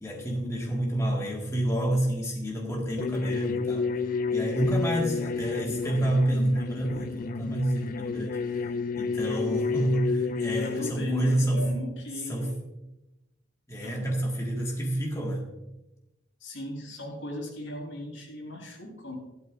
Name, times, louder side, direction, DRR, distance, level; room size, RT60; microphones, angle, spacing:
voice 1, 0.0-3.9 4.3-11.6 12.3-12.5 13.7-15.5, right 1 dB, 15° left, -2 dB, 1.7 m, -28 dB
sound 1, 3.0-10.9, left 4 dB, 45° left, 0.4 m, -30 dB
voice 2, 10.6-12.6 13.8-14.1 16.4-19.2, left 1 dB, 80° left, 0 dB, 3.8 m, -37 dB
15.0 x 12.0 x 2.5 m, 0.96 s
head